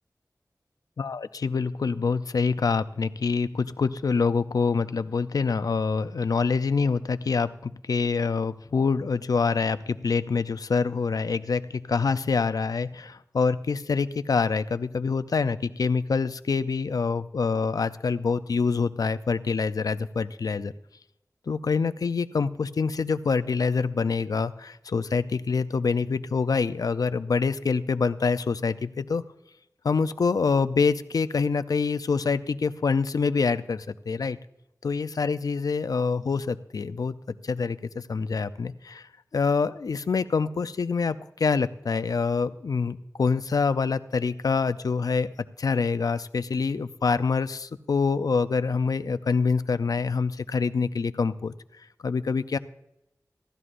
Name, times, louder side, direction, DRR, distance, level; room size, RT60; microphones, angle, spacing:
voice 1, 1.0-20.7 21.5-29.2 29.8-34.4 34.8-37.1 37.4-45.3 45.6-51.5 52.0-52.6, left 5 dB, 80° left, 12 dB, 0.4 m, -26 dB
16.0 x 12.5 x 2.5 m, 0.85 s
wide cardioid pair, 65°, 6 cm